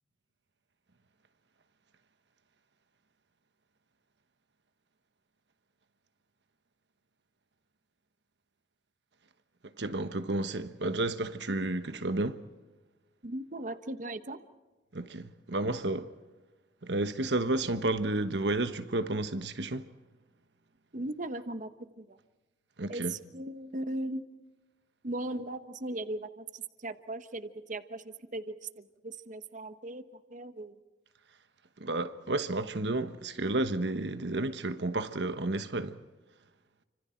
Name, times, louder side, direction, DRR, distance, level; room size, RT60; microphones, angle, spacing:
voice 1, 9.8-12.4 14.9-16.1 16.8-19.9 22.8-23.1 31.8-36.0, right 2 dB, 75° right, 1.2 m, -31 dB
voice 2, 13.2-14.4 20.9-22.2 22.9-24.2 25.0-30.8, right 1 dB, 45° right, 1.1 m, -38 dB
29.5 x 25.5 x 4.5 m
head